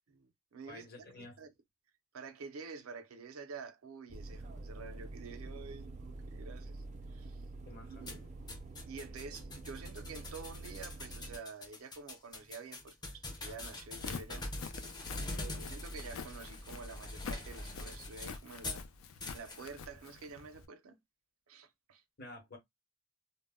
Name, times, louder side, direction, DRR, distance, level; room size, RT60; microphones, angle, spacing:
voice 1, 0.1-1.5 2.1-7.4 7.9-8.2 8.9-14.5 15.4-18.9 19.3-21.0 21.5-22.0, right 5 dB, 85° right, 0.5 m, -49 dB
voice 2, 0.6-1.4 7.7-8.1 15.2-15.5 22.2-22.6, left 2 dB, 50° left, 0.9 m, -50 dB
sound 1, 4.1-11.4, right 2 dB, 35° right, 0.4 m, -47 dB
sound 2, 8.1-18.9 19.2-19.6, left 2 dB, 20° left, 0.5 m, -44 dB
Walk footsteps, 13.9-20.7, left 5 dB, 85° left, 0.4 m, -47 dB
2.0 x 2.0 x 3.5 m
head